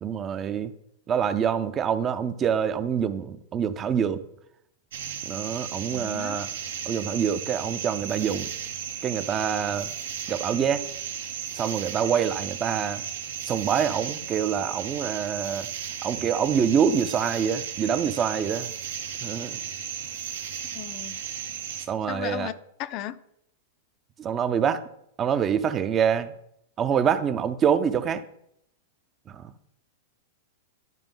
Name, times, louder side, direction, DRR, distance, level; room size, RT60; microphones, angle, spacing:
voice 1, 0.0-0.7 1.1-4.2 5.3-6.5 6.9-8.5 9.0-9.9 10.3-10.9 11.5-13.0 13.4-15.7 16.0-18.7 19.2-19.6 21.9-22.5 24.2-24.9 25.2-26.3 26.8-28.2 29.3-29.5, right 8 dB, 25° right, 0.5 m, -26 dB
sound 1, 4.9-21.9, right 8 dB, 85° right, 0.9 m, -35 dB
voice 2, 5.9-6.4 20.7-21.2 22.1-22.5 22.8-23.2, left 13 dB, 45° left, 0.4 m, -35 dB
11.0 x 5.0 x 3.8 m
hypercardioid pair, 135°, 0 cm